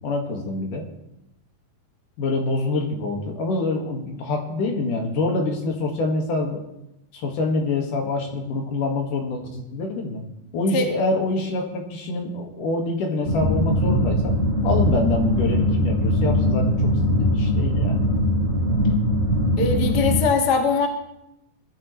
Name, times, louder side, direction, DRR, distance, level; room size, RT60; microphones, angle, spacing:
voice 1, 0.0-0.8 2.2-6.6 7.1-10.2 10.5-14.4 14.6-18.0, left 2 dB, 65° left, 1 dB, 3.3 m, -26 dB
sound 1, 13.2-20.2, equal, 25° right, 2.1 m, -21 dB
voice 2, 19.6-20.9, left 5 dB, 40° left, 3 dB, 1.5 m, -21 dB
20.5 x 12.5 x 3.2 m, 0.86 s
omnidirectional pair, 4.1 m